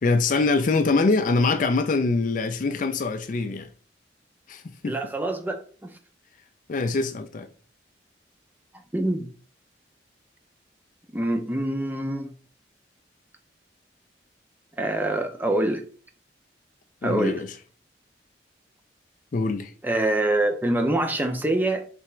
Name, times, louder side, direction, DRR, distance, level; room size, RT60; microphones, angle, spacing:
voice 1, 0.0-3.7 4.5-5.0 6.7-7.5 17.0-17.5 19.3-19.7, left 3 dB, 45° left, 0.4 m, -24 dB
voice 2, 4.9-6.0 8.9-9.3 11.1-12.3 14.8-15.8 17.0-17.4 19.8-21.8, right 1 dB, 10° right, 0.5 m, -25 dB
3.4 x 3.0 x 4.4 m
head